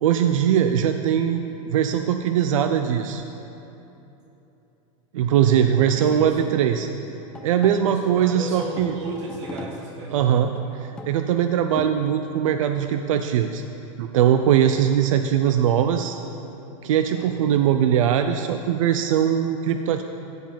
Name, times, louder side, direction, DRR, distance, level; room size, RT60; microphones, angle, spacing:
voice 1, 0.0-3.2 5.1-6.9 7.4-9.0 10.1-10.5 10.8-13.6 14.0-16.2 16.8-20.0, right 9 dB, 90° right, 7 dB, 0.6 m, -21 dB
voice 2, 5.8-6.5 7.9-10.2 17.1-17.6, right 2 dB, 60° right, -1 dB, 1.6 m, -35 dB
sound 1, 6.6-12.9, left 3 dB, 5° left, 0.3 m, -41 dB
14.5 x 5.4 x 6.9 m, 3.0 s
supercardioid pair, 175°, 16 cm